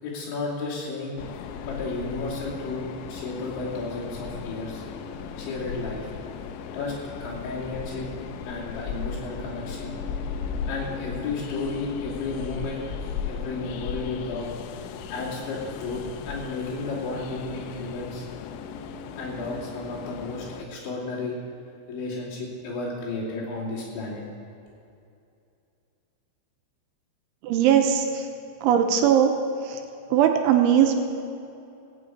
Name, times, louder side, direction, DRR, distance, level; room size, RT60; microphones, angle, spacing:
voice 1, 0.0-1.2 1.6-4.8 5.4-6.1 6.7-6.9 7.2-8.1 8.5-10.0 10.7-12.9 13.3-14.5 15.1-16.0 16.3-18.2 19.2-21.4 21.9-24.2, left 3 dB, 70° left, -5 dB, 5.0 m, -33 dB
Train, 1.2-20.7, left 6 dB, 85° left, 3.2 m, -36 dB
voice 2, 27.4-28.3 28.6-29.3 29.6-29.8 30.1-31.0, right 9 dB, 80° right, 5 dB, 3.1 m, -20 dB
17.0 x 6.2 x 8.4 m, 2.6 s
omnidirectional pair, 5.7 m